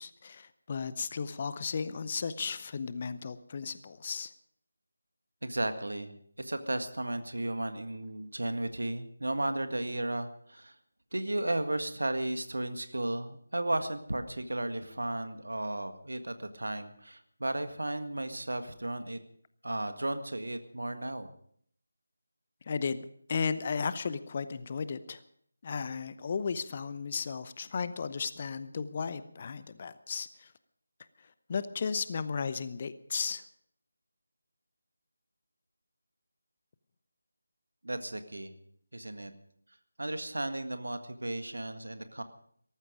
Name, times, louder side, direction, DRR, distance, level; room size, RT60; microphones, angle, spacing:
voice 1, 0.0-4.3 22.7-25.2 25.6-30.5 31.2-33.4, left 5 dB, 30° left, 14 dB, 0.8 m, -35 dB
voice 2, 5.4-10.7 11.1-19.2 19.6-21.3 37.8-38.5 38.9-39.3 40.0-42.2, right 1 dB, 65° right, 9 dB, 1.7 m, -34 dB
18.5 x 14.0 x 5.1 m, 0.64 s
figure-of-eight pair, 160°, 0 cm